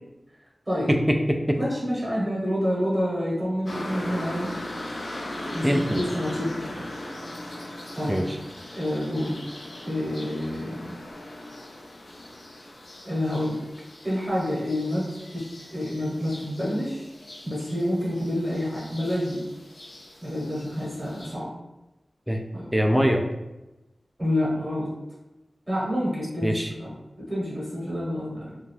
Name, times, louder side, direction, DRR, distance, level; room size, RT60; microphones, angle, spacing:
voice 1, 0.9-1.6 5.6-6.0 8.1-8.4 22.3-22.4 22.7-23.2 26.4-26.7, equal, 5° right, 3 dB, 0.3 m, -22 dB
voice 2, 1.6-4.5 5.5-6.9 7.9-8.2 8.7-9.4 9.8-11.0 13.0-13.6 14.0-17.1 17.4-19.4 20.2-21.5 22.5-22.7 24.2-24.9 25.7-28.6, equal, 30° right, -6 dB, 0.9 m, -28 dB
sound 1, 3.7-21.3, left 1 dB, 80° left, 0.5 m, -39 dB
2.5 x 2.3 x 3.2 m, 0.99 s
wide cardioid pair, 70°, 0 cm